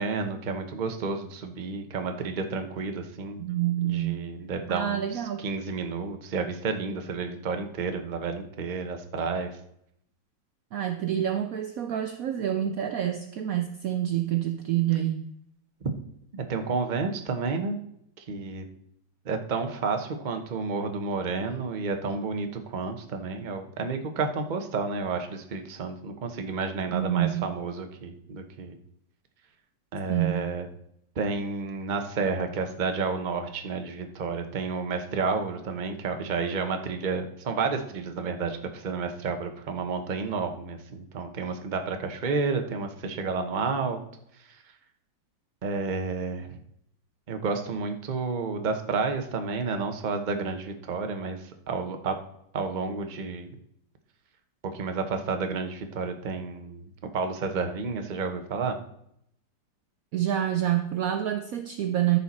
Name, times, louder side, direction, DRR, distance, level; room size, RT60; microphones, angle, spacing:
voice 1, 0.0-3.4 3.8-9.5 15.8-15.9 16.3-17.8 18.2-18.6 19.2-28.8 29.9-30.7 31.2-44.0 45.6-46.6 47.3-52.2 52.5-53.5 54.6-58.8, right 4 dB, 40° right, 6 dB, 0.6 m, -31 dB
voice 2, 3.4-4.2 4.7-5.4 10.7-15.2 26.9-27.5 30.1-30.5 60.1-62.2, right 11 dB, 80° right, 7 dB, 0.7 m, -27 dB
13.5 x 5.6 x 4.2 m, 0.73 s
omnidirectional pair, 2.2 m